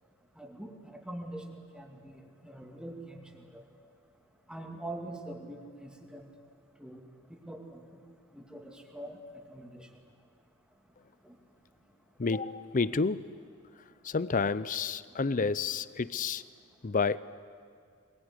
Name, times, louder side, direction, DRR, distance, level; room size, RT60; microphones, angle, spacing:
voice 1, 0.4-3.6 4.5-6.3 6.8-8.0 8.3-9.9 11.2-11.4, right 1 dB, 5° right, 2 dB, 2.4 m, -44 dB
voice 2, 12.2-13.3 14.0-16.4 16.8-17.2, left 4 dB, 35° left, 17 dB, 0.6 m, -29 dB
23.5 x 21.5 x 9.8 m, 2.2 s
head